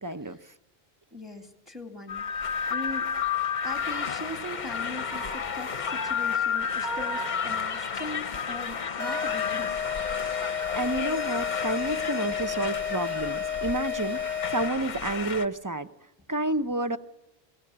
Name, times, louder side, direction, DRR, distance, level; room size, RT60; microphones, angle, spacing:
voice 1, 0.0-0.4 10.7-15.9 16.3-17.0, right 2 dB, 20° right, 10 dB, 0.7 m, -30 dB
voice 2, 1.1-3.1 3.6-9.8, left 2 dB, ahead, 6 dB, 2.1 m, -40 dB
sound 1, 2.1-15.4, left 6 dB, 45° left, 0.9 m, -31 dB
sound 2, 9.0-15.0, left 7 dB, 60° right, 1.8 m, -32 dB
23.5 x 16.5 x 8.6 m, 1.0 s
omnidirectional pair, 1.1 m